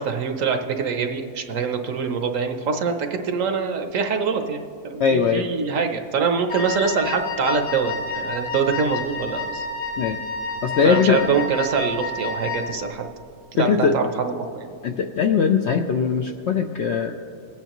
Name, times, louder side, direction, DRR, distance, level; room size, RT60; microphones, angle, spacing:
voice 1, 0.0-9.7 10.8-13.1 13.5-14.7, right 5 dB, 65° right, 5 dB, 1.0 m, -24 dB
voice 2, 5.0-5.4 10.0-10.2 10.6-11.3 13.6-14.0 14.8-17.1, left 6 dB, 70° left, 4 dB, 0.6 m, -20 dB
Wind instrument woodwind instrument, 6.5-12.8, left 4 dB, 85° left, 2.5 m, -30 dB
20.5 x 9.0 x 3.0 m, 2.4 s
omnidirectional pair, 1.6 m